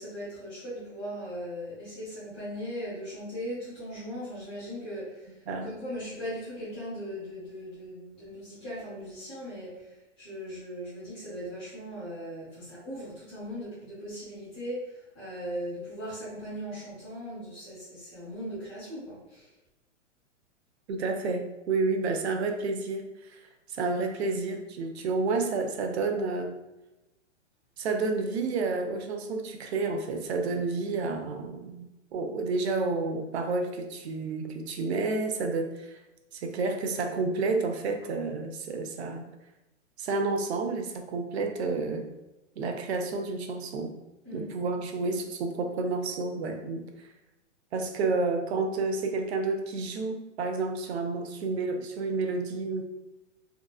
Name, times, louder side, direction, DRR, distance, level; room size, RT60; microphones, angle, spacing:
voice 1, 0.0-19.5 44.2-44.5, equal, 5° left, -14 dB, 0.3 m, -39 dB
voice 2, 20.9-23.4 23.7-26.6 27.8-36.0 36.3-39.3 40.0-42.1 42.6-43.9 44.3-46.8 47.7-52.8, right 3 dB, 60° right, 5 dB, 0.5 m, -30 dB
2.8 x 2.3 x 2.2 m, 0.98 s
hypercardioid pair, 160°, 37 cm